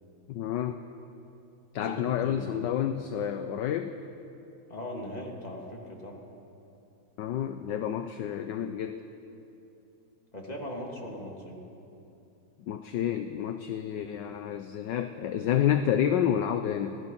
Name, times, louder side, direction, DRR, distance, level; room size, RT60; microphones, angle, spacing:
voice 1, 0.3-0.8 1.7-3.9 7.2-9.0 12.6-17.0, left 9 dB, 70° left, 8 dB, 1.3 m, -29 dB
voice 2, 1.8-2.6 4.7-6.2 10.3-11.6, left 1 dB, 20° left, -2 dB, 3.0 m, -39 dB
26.0 x 17.5 x 5.9 m, 2.8 s
omnidirectional pair, 2.2 m